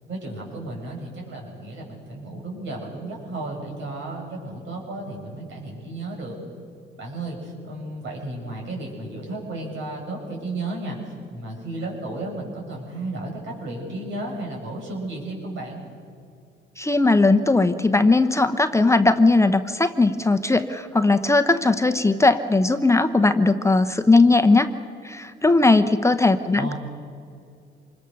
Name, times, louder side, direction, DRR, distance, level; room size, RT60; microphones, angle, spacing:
voice 1, 0.0-6.4 6.9-15.8 26.6-26.7, right 2 dB, 70° right, 0 dB, 7.4 m, -33 dB
voice 2, 16.8-24.7 25.0-26.7, left 3 dB, 15° left, 8 dB, 0.9 m, -18 dB
25.5 x 21.5 x 6.6 m, 2.3 s
cardioid pair, 90°, 20 cm